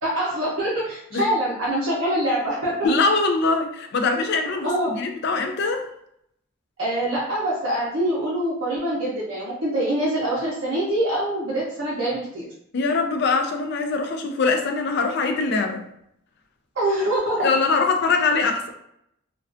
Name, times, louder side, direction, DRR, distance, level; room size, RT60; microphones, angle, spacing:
voice 1, 0.0-2.9 4.6-4.9 6.8-12.4 16.8-17.5, right 1 dB, 60° right, -8 dB, 0.6 m, -24 dB
voice 2, 2.8-5.9 12.7-15.8 17.4-18.7, left 3 dB, 50° left, 5 dB, 0.3 m, -22 dB
2.3 x 2.2 x 2.4 m, 0.74 s
head